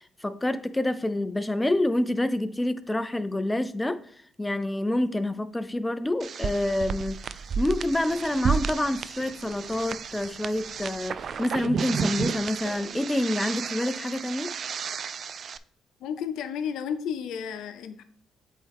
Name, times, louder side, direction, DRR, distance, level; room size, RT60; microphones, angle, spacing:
voice 1, 0.0-4.0 4.4-14.5, left 1 dB, 15° left, 12 dB, 0.5 m, -27 dB
sound 1, 6.2-15.6, right 6 dB, 55° right, 0.3 m, -32 dB
Cough, 8.1-9.6 12.6-13.1 13.4-13.7, right 3 dB, 80° right, 2.6 m, -48 dB
voice 2, 16.0-18.0, left 7 dB, 80° left, 10 dB, 0.7 m, -32 dB
8.2 x 4.2 x 3.5 m, 0.62 s
cardioid pair, 90°, 0 cm